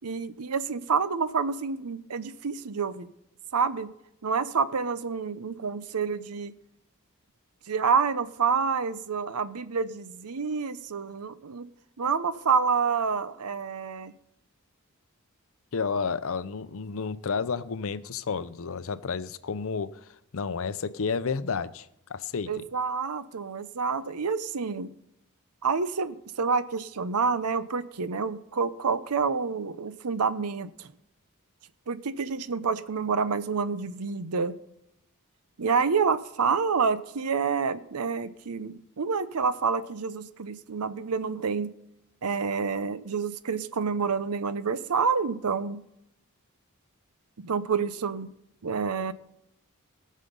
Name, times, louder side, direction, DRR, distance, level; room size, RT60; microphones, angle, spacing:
voice 1, 0.0-3.1 3.5-3.9 4.2-6.5 7.7-11.7 12.0-14.1 22.5-24.9 25.6-30.9 31.9-34.5 35.6-41.7 42.2-45.8 47.4-48.3 48.6-49.1, right 5 dB, 85° right, 14 dB, 0.7 m, -28 dB
voice 2, 15.7-22.6, left 5 dB, 65° left, 15 dB, 0.6 m, -31 dB
19.0 x 6.4 x 5.4 m, 0.79 s
head